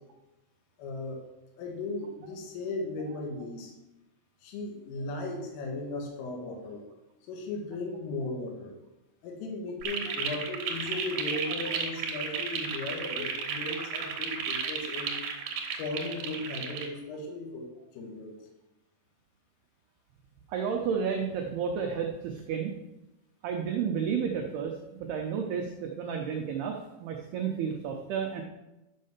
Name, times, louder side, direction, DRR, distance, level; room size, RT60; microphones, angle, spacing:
voice 1, 0.8-1.2 1.6-3.7 4.4-6.8 7.3-8.7 9.2-15.2 15.8-17.7 17.9-18.4, left 2 dB, 80° left, 1 dB, 4.2 m, -36 dB
sound 1, 9.8-16.9, right 6 dB, 70° right, 2.2 m, -33 dB
voice 2, 20.5-22.7 23.4-24.7 25.0-28.4, right 7 dB, 85° right, 2 dB, 2.2 m, -31 dB
11.5 x 5.6 x 6.6 m, 0.98 s
omnidirectional pair, 5.9 m